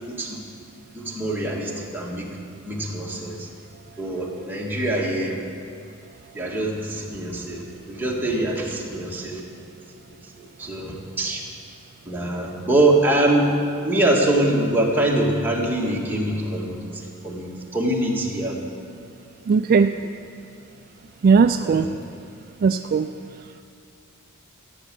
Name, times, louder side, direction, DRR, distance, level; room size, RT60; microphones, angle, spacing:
voice 1, 0.1-0.4 0.9-2.4 2.7-3.5 4.0-5.4 6.4-9.4 10.0-11.4 12.1-13.5 13.8-16.8 17.2-18.5 19.9-20.1 21.6-22.0, right 1 dB, 10° right, -3 dB, 1.8 m, -24 dB
voice 2, 19.5-19.9 21.2-21.9 22.6-23.1, right 5 dB, 45° right, 8 dB, 0.3 m, -17 dB
14.5 x 8.7 x 7.6 m, 2.4 s
head